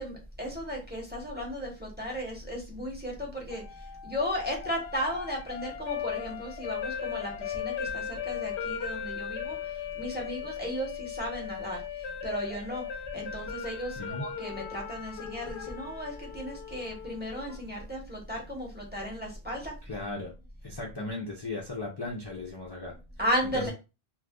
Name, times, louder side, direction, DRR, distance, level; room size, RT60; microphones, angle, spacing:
voice 1, 0.0-12.8 13.1-19.7 23.2-23.7, equal, 10° right, 0 dB, 0.9 m, -35 dB
sound 1, 3.5-17.6, left 8 dB, 75° left, 0.8 m, -38 dB
voice 2, 19.8-20.3 20.6-22.9 23.4-23.7, left 2 dB, 30° left, -2 dB, 0.5 m, -36 dB
2.6 x 2.5 x 3.6 m, 0.29 s
omnidirectional pair, 1.1 m